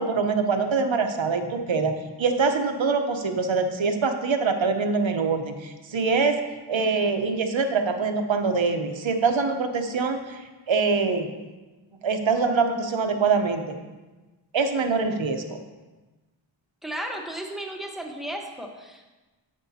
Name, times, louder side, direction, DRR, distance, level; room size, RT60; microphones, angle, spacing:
voice 1, 0.0-6.4 6.7-11.3 12.0-13.6 14.5-15.4, right 4 dB, 65° right, 6 dB, 0.9 m, -24 dB
voice 2, 16.8-19.2, right 1 dB, ahead, 2 dB, 1.1 m, -34 dB
9.8 x 7.4 x 2.8 m, 1.2 s
wide cardioid pair, 60°, 49 cm